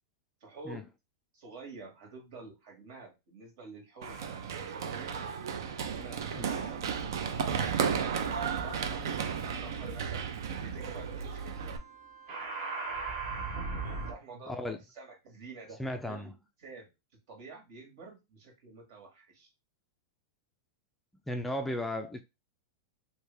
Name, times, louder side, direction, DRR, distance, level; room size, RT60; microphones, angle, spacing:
voice 1, 0.4-0.8 1.3-4.2 4.7-5.2 5.9-10.3 10.6-11.7 14.0-14.6 14.9-15.8 16.0-16.3 16.6-16.9 17.3-19.5, right 3 dB, 60° right, 1.8 m, -49 dB
sound 1, 4.0-4.8 5.6-14.1, right 4 dB, 45° right, 1.4 m, -42 dB
Run, 4.0-11.8, right 7 dB, 75° right, 0.6 m, -34 dB
voice 2, 14.5-14.8 15.8-16.3 21.3-22.2, left 1 dB, 5° left, 0.3 m, -35 dB
3.2 x 2.6 x 3.4 m
supercardioid pair, 140°, 2 cm